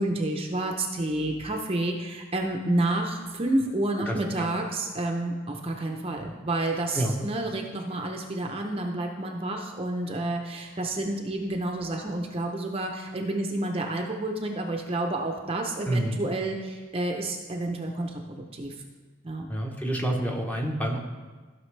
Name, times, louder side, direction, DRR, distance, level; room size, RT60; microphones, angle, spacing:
voice 1, 0.0-18.7 19.2-19.5, right 2 dB, 30° right, 2 dB, 0.7 m, -29 dB
voice 2, 4.1-4.5 6.9-7.2 15.9-16.2 19.5-21.0, right 1 dB, 10° left, 0 dB, 0.9 m, -28 dB
15.0 x 5.9 x 3.3 m, 1.4 s
head